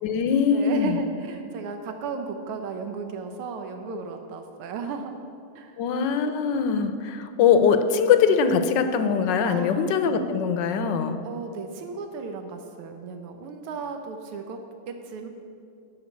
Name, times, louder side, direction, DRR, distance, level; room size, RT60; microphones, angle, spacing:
voice 1, 0.0-1.0 5.8-11.2, left 6 dB, 70° left, 9 dB, 1.2 m, -22 dB
voice 2, 0.5-5.1 5.5-5.8 9.4-9.9 11.2-14.6 14.9-15.3, right 5 dB, 85° right, 5 dB, 1.7 m, -35 dB
11.5 x 5.2 x 8.4 m, 2.4 s
omnidirectional pair, 2.4 m